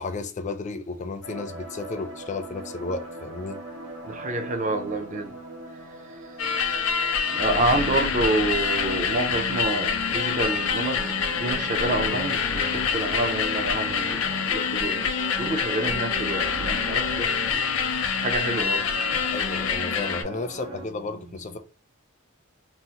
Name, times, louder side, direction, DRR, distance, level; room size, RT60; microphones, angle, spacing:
voice 1, 0.0-3.6 19.3-21.6, left 3 dB, 35° left, 0.4 m, -33 dB
sound 1, 1.2-20.9, right 2 dB, 80° right, 0.8 m, -40 dB
voice 2, 4.0-5.3 7.3-17.6 18.2-18.8 19.1-19.2, right 2 dB, 35° right, 0.4 m, -28 dB
sound 2, 6.4-20.2, left 6 dB, 80° left, 0.6 m, -26 dB
3.8 x 2.0 x 2.8 m
head